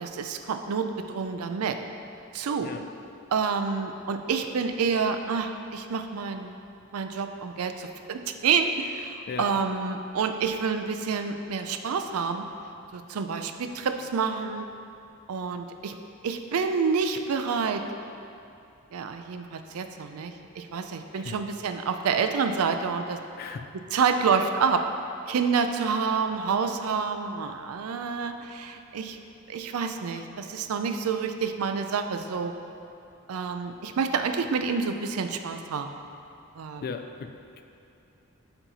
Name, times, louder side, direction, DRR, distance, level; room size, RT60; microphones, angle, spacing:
voice 1, 0.0-1.8 2.3-2.7 3.3-6.5 6.9-12.4 12.9-14.7 15.3-15.9 16.2-17.8 18.9-23.2 23.9-24.8 25.3-29.2 29.5-32.5 33.3-35.9 36.6-36.8, right 5 dB, 85° right, 7 dB, 0.4 m, -28 dB
voice 2, 23.4-23.7 36.8-37.6, left 5 dB, 45° left, 7 dB, 0.3 m, -37 dB
7.6 x 4.5 x 4.0 m, 2.7 s
head